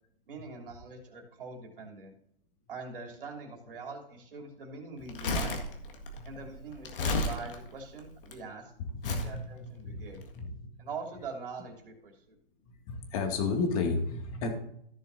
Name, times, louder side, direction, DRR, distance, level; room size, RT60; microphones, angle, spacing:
voice 1, 0.3-2.1 2.7-5.6 6.2-8.7 9.2-10.2 10.8-12.4, right 4 dB, 65° right, 2 dB, 3.0 m, -43 dB
Crumpling crinkling, 5.0-8.3 9.0-9.4 10.1-10.2, left 2 dB, 65° left, 1.8 m, -33 dB
voice 2, 9.0-10.0 10.4-10.5 12.7-14.5, left 4 dB, 35° left, 4 dB, 2.1 m, -32 dB
15.0 x 6.6 x 2.7 m, 0.71 s
hypercardioid pair, 130°, 29 cm